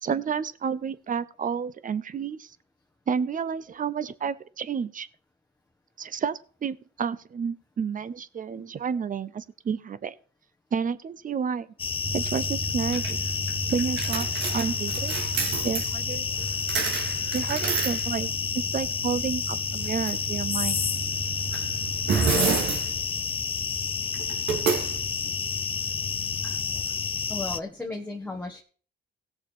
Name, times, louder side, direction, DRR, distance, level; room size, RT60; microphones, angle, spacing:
voice 1, 0.0-2.6 3.1-5.1 6.0-10.1 10.7-11.7 12.1-13.3 13.7-15.2 15.6-16.3 17.3-18.3 18.5-20.8 22.1-22.2, right 6 dB, 45° right, 17 dB, 0.8 m, -30 dB
sound 1, 11.8-27.6, left 6 dB, 30° left, 0.4 m, -30 dB
sound 2, 12.0-26.8, right 5 dB, 70° right, 2.7 m, -31 dB
voice 2, 26.4-27.0 27.3-28.6, left 3 dB, 10° left, 0 dB, 1.7 m, -36 dB
16.5 x 6.6 x 4.6 m, 0.41 s
cardioid pair, 90°, 20 cm